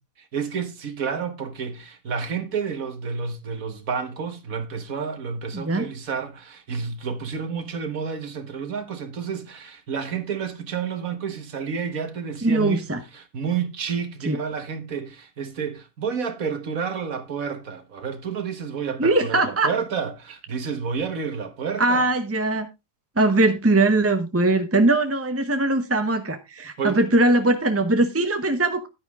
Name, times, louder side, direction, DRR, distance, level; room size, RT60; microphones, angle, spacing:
voice 1, 0.3-12.9 13.1-22.1 26.8-27.1, right 6 dB, 60° right, 1.7 m, -30 dB
voice 2, 5.5-5.9 12.4-13.0 14.3-14.4 19.0-19.7 21.8-22.7 23.2-28.9, right 2 dB, 15° right, 0.6 m, -21 dB
10.5 x 9.7 x 3.5 m
omnidirectional pair, 1.7 m